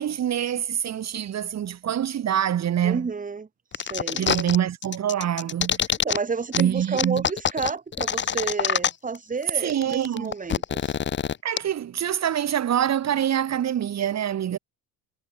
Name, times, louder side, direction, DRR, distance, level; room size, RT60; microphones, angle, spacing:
voice 1, 0.0-3.0 4.2-5.8 6.5-7.3 9.5-10.3 11.4-14.6, right 10 dB, 40° right, 3.0 m, -25 dB
voice 2, 2.8-3.5 3.7-4.3 6.0-10.9, right 5 dB, 20° right, 4.4 m, -30 dB
sound 1, 3.7-4.6 4.8-6.2 6.5-6.6 7.0-9.2 9.4-9.5 9.7-11.6, left 8 dB, 30° left, 1.1 m, -25 dB
cardioid pair, 140°, 39 cm